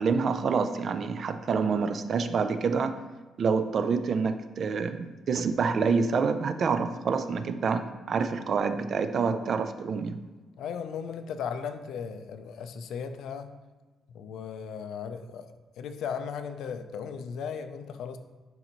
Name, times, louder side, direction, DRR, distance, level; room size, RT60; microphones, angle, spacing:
voice 1, 0.0-3.0 3.4-10.2, right 5 dB, 40° right, 10 dB, 0.3 m, -27 dB
voice 2, 10.6-13.6 14.1-15.5 15.8-18.2, left 6 dB, 75° left, 8 dB, 0.5 m, -36 dB
10.5 x 3.9 x 3.0 m, 1.3 s
cardioid pair, 175°, 0 cm